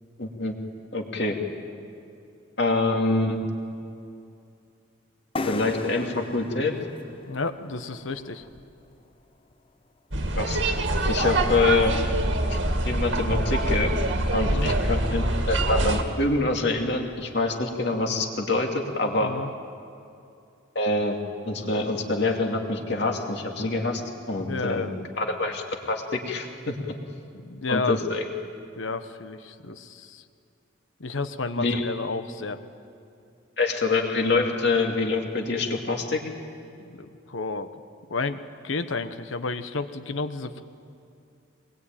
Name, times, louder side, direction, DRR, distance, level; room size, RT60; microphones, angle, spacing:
voice 1, 0.2-0.5 0.9-1.4 2.6-3.4 5.5-6.7 10.4-10.6 11.1-11.9 12.5-12.6 12.8-13.9 14.3-19.3 20.7-21.2 21.5-24.0 24.3-24.8 25.2-26.9 27.7-28.3 31.6-31.8 33.6-36.2, left 3 dB, 55° left, 2 dB, 2.7 m, -25 dB
sound 1, 5.4-9.0, left 2 dB, 25° left, 0.7 m, -37 dB
voice 2, 7.3-8.4 14.4-14.7 19.2-19.5 24.3-25.0 27.4-28.0 28.8-30.2 31.0-32.6 36.8-37.7 38.1-40.6, left 3 dB, 75° left, 10 dB, 1.2 m, -31 dB
sound 2, 10.1-16.0, right 1 dB, 70° right, 2.1 m, -25 dB
22.5 x 21.5 x 9.0 m, 2.6 s
head